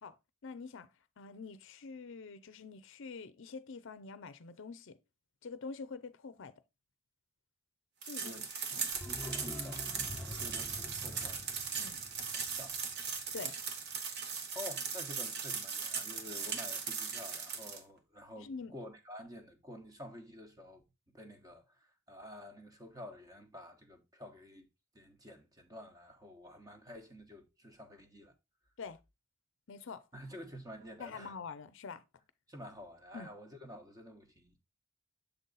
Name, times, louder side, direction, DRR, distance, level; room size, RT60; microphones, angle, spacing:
voice 1, 0.4-0.9 1.2-5.0 5.4-6.5 8.0-8.4 8.7-8.9 10.4-10.6 11.7-12.0 13.3-13.6 18.4-18.7 28.8-29.0 29.7-30.0 31.0-32.0 33.1-33.3, left 4 dB, 60° left, 0.5 m, -46 dB
sound 1, 8.0-17.8, right 5 dB, 55° right, 1.0 m, -39 dB
voice 2, 8.2-8.8 9.0-9.8 10.2-11.5 12.5-12.8 14.5-24.7 24.9-28.3 30.1-31.3 32.5-34.6, left 1 dB, 20° right, 1.1 m, -50 dB
sound 2, 8.9-13.6 13.9-14.0, left 2 dB, 10° left, 0.6 m, -47 dB
6.9 x 4.0 x 3.9 m
head